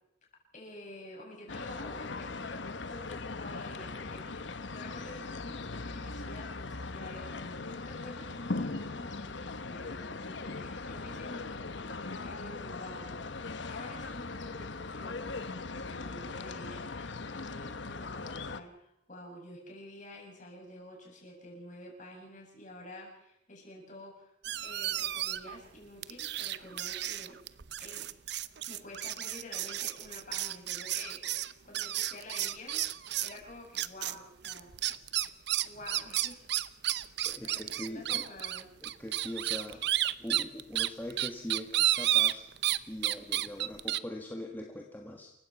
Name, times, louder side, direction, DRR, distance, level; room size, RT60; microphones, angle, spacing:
voice 1, 0.5-24.3 24.6-27.4 27.8-28.1 28.6-32.8 33.2-34.7 35.6-36.4 37.4-38.7, left 1 dB, 40° left, -1 dB, 8.0 m, -49 dB
sound 1, 1.5-18.6, left 3 dB, 65° left, 1.1 m, -39 dB
sound 2, 24.4-25.6 26.0-33.4 33.8-34.2 34.4-42.8 43.0-44.0, right 13 dB, 60° right, 0.7 m, -32 dB
voice 2, 37.2-38.3 38.8-39.9 40.2-42.5 42.9-45.3, left 1 dB, 10° left, 1 dB, 1.7 m, -42 dB
28.5 x 15.5 x 6.0 m, 0.78 s
head